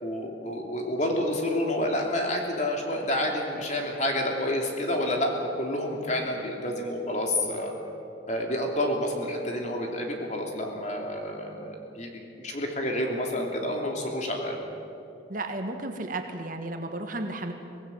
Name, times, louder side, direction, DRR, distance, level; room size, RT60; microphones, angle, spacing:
voice 1, 0.0-7.7 8.3-12.1 12.4-14.6, left 1 dB, 40° left, 1 dB, 3.2 m, -29 dB
voice 2, 15.3-17.5, right 2 dB, 45° right, 5 dB, 1.7 m, -33 dB
24.5 x 18.5 x 7.3 m, 2.7 s
head